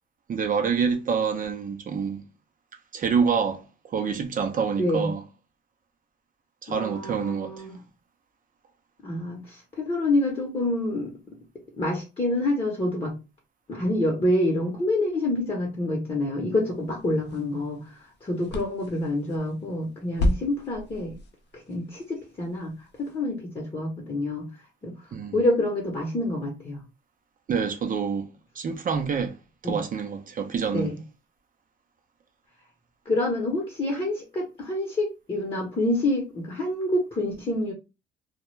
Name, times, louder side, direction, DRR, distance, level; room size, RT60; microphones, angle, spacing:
voice 1, 0.3-2.2 2.9-5.2 6.6-7.6 25.1-25.4 27.5-28.3 28.6-29.4 29.6-30.9, right 6 dB, 45° right, 0.5 m, -27 dB
voice 2, 4.8-5.1 6.7-7.8 9.0-11.1 11.8-13.1 13.7-21.2 21.5-22.7 23.0-24.5 24.8-25.0 25.3-26.8 29.6-29.8 30.7-31.0 33.1-37.7, left 1 dB, 30° left, 0.8 m, -27 dB
sound 1, 16.6-23.2, left 1 dB, 60° left, 0.6 m, -34 dB
2.2 x 2.1 x 3.1 m
cardioid pair, 90°, 20 cm